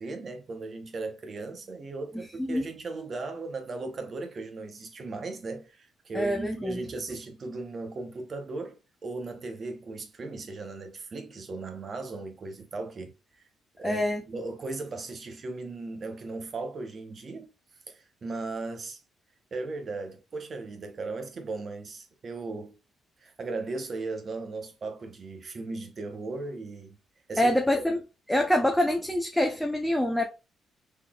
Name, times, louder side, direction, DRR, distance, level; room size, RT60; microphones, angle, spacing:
voice 1, 0.0-8.8 9.0-13.1 13.8-17.5 17.9-19.0 19.5-22.8 23.2-27.0 27.3-27.5, right 3 dB, 45° right, 0.8 m, -37 dB
voice 2, 6.1-6.8 13.8-14.2 27.4-28.0 28.3-30.3, left 1 dB, 5° left, 0.6 m, -25 dB
3.9 x 3.2 x 2.3 m
cardioid pair, 90°, 0 cm